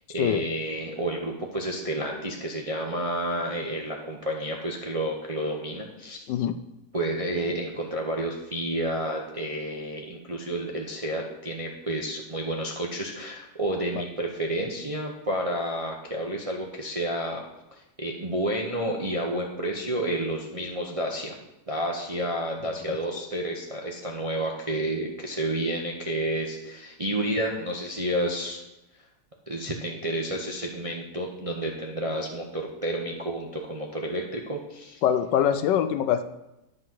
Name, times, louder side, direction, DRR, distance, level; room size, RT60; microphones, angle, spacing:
voice 1, 0.1-6.3 6.9-17.4 17.7-21.4 21.7-28.6 29.5-35.0, right 1 dB, 35° right, 0 dB, 0.5 m, -30 dB
voice 2, 35.0-36.2, left 9 dB, 75° left, 10 dB, 1.1 m, -23 dB
10.5 x 3.9 x 7.5 m, 0.92 s
omnidirectional pair, 2.1 m